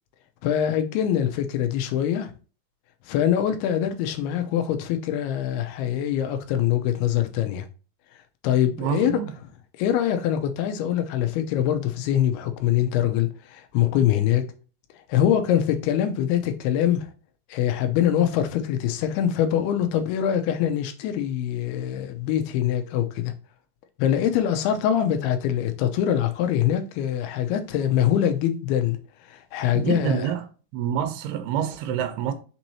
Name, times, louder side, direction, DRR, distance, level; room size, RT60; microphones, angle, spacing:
voice 1, 0.4-2.3 3.1-7.7 8.4-9.1 9.8-14.4 15.1-17.1 17.5-23.3 24.0-29.0 29.3-30.3, left 10 dB, 80° left, 2.6 m, -23 dB
voice 2, 8.8-9.3 29.7-30.5 30.7-32.3, right 9 dB, 85° right, 2.6 m, -27 dB
6.3 x 3.0 x 2.7 m
omnidirectional pair, 4.5 m